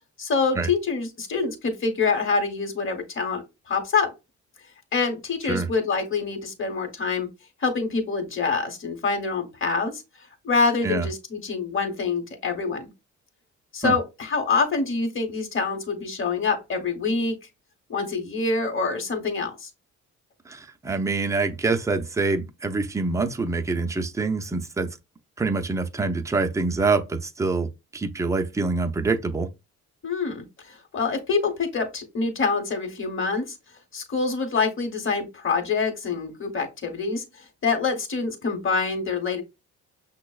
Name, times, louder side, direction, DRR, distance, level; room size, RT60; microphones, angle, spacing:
voice 1, 0.2-4.1 4.9-7.3 7.6-10.0 10.4-12.9 13.7-17.3 17.9-19.7 30.0-33.4 33.9-39.4, left 4 dB, 40° left, 1.0 m, -26 dB
voice 2, 20.5-24.9 25.4-29.5, right 3 dB, 10° right, 0.4 m, -25 dB
5.9 x 2.0 x 2.3 m
cardioid pair, 90°, 30 cm